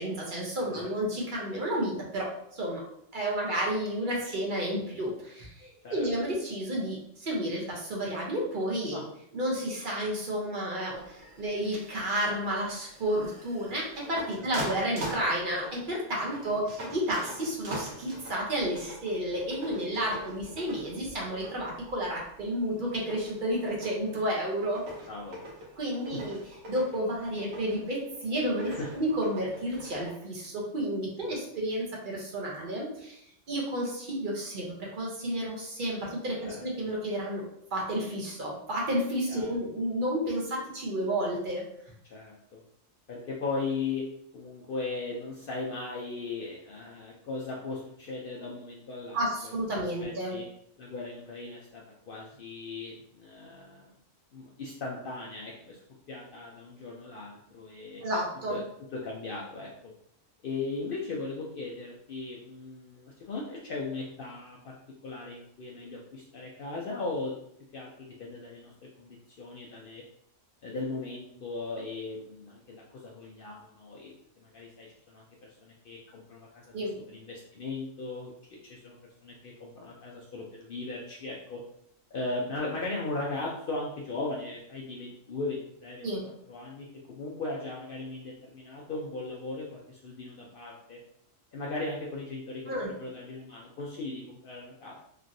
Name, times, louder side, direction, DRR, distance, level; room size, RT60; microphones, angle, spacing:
voice 1, 0.0-2.8 3.1-9.0 9.3-24.8 25.8-26.4 26.7-33.2 33.5-37.4 37.7-41.6 49.1-50.4 58.0-58.6 76.7-76.9 86.0-86.2 92.7-92.9, right 1 dB, 45° right, -2 dB, 0.8 m, -31 dB
sound 1, 10.9-30.1, right 1 dB, 85° right, 1.3 m, -44 dB
voice 2, 25.1-25.5 26.1-26.2 28.6-28.9 31.2-31.3 36.4-36.6 39.3-39.5 42.1-42.6 43.1-44.0 44.3-50.4 50.8-53.8 54.3-55.8 56.1-58.0 58.5-58.6 58.9-59.9 60.4-64.8 65.0-67.3 67.7-70.0 70.6-74.1 74.4-76.7 77.1-79.0 79.2-81.6 82.1-91.0 91.5-95.0, left 3 dB, 65° left, -3 dB, 0.5 m, -38 dB
3.0 x 2.5 x 2.5 m, 0.71 s
omnidirectional pair, 1.4 m